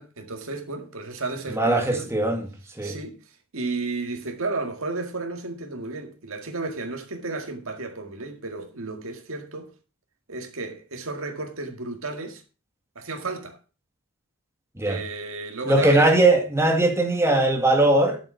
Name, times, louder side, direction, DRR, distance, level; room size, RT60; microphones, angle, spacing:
voice 1, 0.0-2.1 2.8-9.7 10.3-12.4 13.0-13.6 14.8-16.2, right 3 dB, 70° right, 1.9 m, -33 dB
voice 2, 1.5-2.4 2.8-3.0 14.8-15.0 15.7-18.2, right 2 dB, 15° right, 2.1 m, -20 dB
9.1 x 7.3 x 5.9 m
head